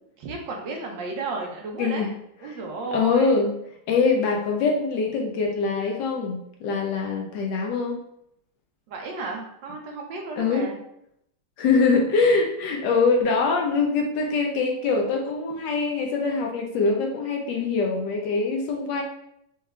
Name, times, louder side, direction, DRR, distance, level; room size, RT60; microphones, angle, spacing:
voice 1, 0.2-2.1 2.4-3.4 8.9-10.8, right 3 dB, 70° right, 1 dB, 1.3 m, -33 dB
voice 2, 1.8-2.1 2.5-2.6 2.9-3.5 3.9-8.0 10.4-10.7 11.6-19.0, left 4 dB, 75° left, 1 dB, 1.2 m, -23 dB
4.8 x 3.1 x 2.2 m, 0.75 s
omnidirectional pair, 2.2 m